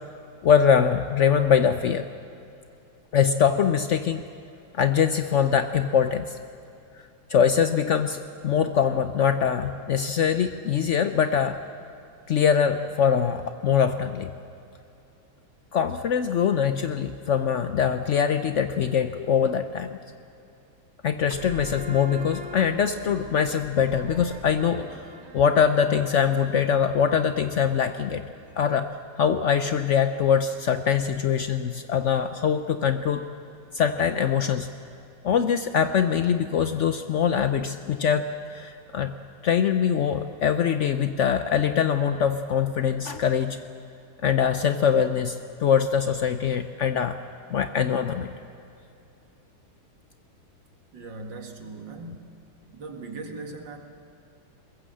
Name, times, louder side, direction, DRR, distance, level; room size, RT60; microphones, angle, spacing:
voice 1, 0.4-2.0 3.1-4.2 4.7-6.4 7.3-11.6 12.3-14.3 15.7-19.9 21.0-25.1 25.3-28.2 28.6-28.9 29.2-33.3 33.7-34.7 35.2-39.1 39.4-43.6 44.2-47.2 47.5-48.3, left 7 dB, 80° left, 9 dB, 0.6 m, -23 dB
sound 1, 21.3-28.6, right 2 dB, 40° right, 1.3 m, -43 dB
voice 2, 50.9-52.4 52.7-53.8, right 3 dB, 65° right, 4 dB, 2.5 m, -39 dB
22.0 x 21.5 x 7.6 m, 2.6 s
omnidirectional pair, 2.2 m